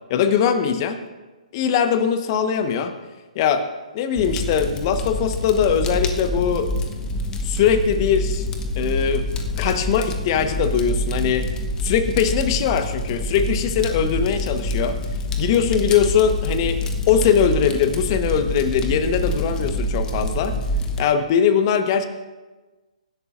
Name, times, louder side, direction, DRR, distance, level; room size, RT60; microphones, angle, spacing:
voice 1, 0.1-1.0 1.5-3.0 3.3-3.7 3.9-6.7 7.4-8.5 8.8-9.3 9.6-11.5 11.8-15.0 15.4-16.8 17.1-20.6 21.0-22.1, left 7 dB, 35° left, 9 dB, 1.2 m, -21 dB
Fire, 4.2-21.0, left 1 dB, 15° left, 1.0 m, -26 dB
23.0 x 11.5 x 2.6 m, 1.2 s
figure-of-eight pair, 135°, 4 cm